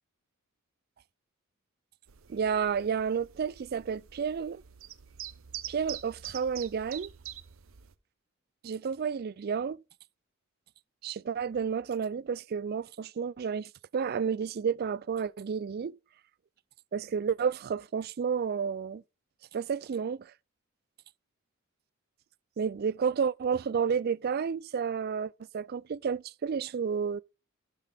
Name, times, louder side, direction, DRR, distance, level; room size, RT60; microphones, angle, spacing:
sound 1, 2.1-7.9, right 11 dB, 70° right, 0.8 m, -45 dB
voice 1, 2.3-4.6 5.7-7.1 8.6-9.8 11.0-16.0 16.9-19.0 19.5-20.3 22.6-27.2, right 6 dB, 45° right, 0.4 m, -31 dB
12.5 x 5.5 x 3.5 m
head